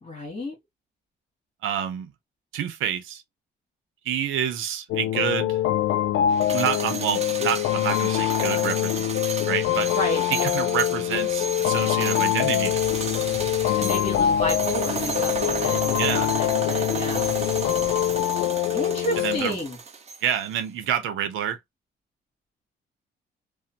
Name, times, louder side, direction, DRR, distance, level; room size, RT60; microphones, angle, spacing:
voice 1, 0.0-0.6 9.9-10.2 13.8-17.3 18.7-19.8, equal, 30° left, 1.7 m, -31 dB
voice 2, 1.6-2.1 2.5-3.2 4.0-5.6 6.4-9.9 10.4-13.1 16.0-16.3 19.2-19.6 20.2-21.6, right 9 dB, 85° right, 0.7 m, -28 dB
sound 1, 4.9-19.4, left 12 dB, 75° left, 0.4 m, -24 dB
sound 2, 6.3-20.4, right 5 dB, 35° right, 0.7 m, -33 dB
sound 3, 12.6-18.2, left 6 dB, 55° left, 0.7 m, -40 dB
2.9 x 2.2 x 2.7 m
cardioid pair, 90°, 20 cm